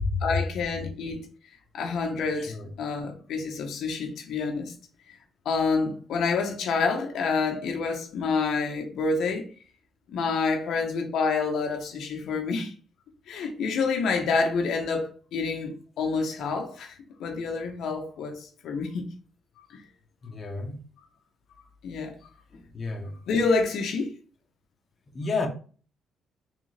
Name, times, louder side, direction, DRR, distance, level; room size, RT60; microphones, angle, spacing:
voice 1, 0.2-1.2 1.7-4.7 5.4-9.4 10.1-12.7 13.3-19.1 19.6-19.7 21.8-22.1 23.3-24.1, left 4 dB, 75° left, 0.8 m, -28 dB
voice 2, 20.3-20.8 22.7-23.1 25.1-25.5, left 3 dB, 35° left, 0.9 m, -31 dB
3.7 x 3.2 x 3.2 m
cardioid pair, 90°, 0 cm